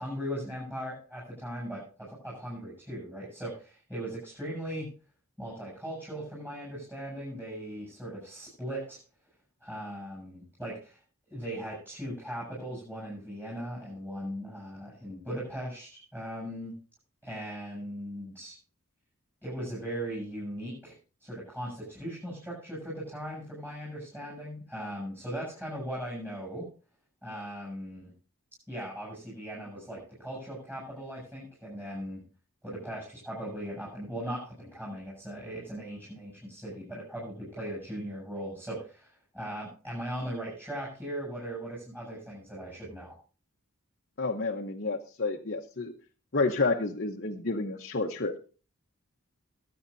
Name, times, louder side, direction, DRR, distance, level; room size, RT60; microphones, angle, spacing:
voice 1, 0.0-4.9 5.4-9.0 9.6-11.0 11.3-16.8 17.2-18.6 19.4-20.9 21.2-26.7 27.2-28.1 28.7-32.2 32.6-43.2, equal, 10° right, -5 dB, 7.9 m, -38 dB
voice 2, 44.2-45.9 46.3-48.4, left 3 dB, 50° left, 1 dB, 1.0 m, -30 dB
23.0 x 8.7 x 2.7 m, 0.36 s
head